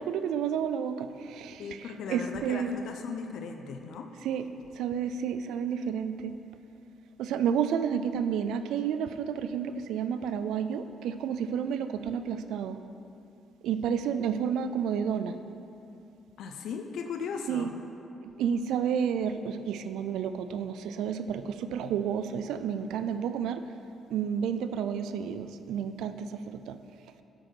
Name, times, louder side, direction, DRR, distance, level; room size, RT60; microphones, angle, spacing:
voice 1, 0.0-2.8 4.2-4.5 4.8-6.4 7.2-12.8 13.6-15.4 17.5-17.7 18.2-23.6 24.1-26.8, right 7 dB, 85° right, 11 dB, 0.4 m, -31 dB
voice 2, 1.6-4.1 16.4-17.7, left 5 dB, 75° left, 5 dB, 0.6 m, -37 dB
9.0 x 6.6 x 4.5 m, 2.7 s
cardioid pair, 90°, 0 cm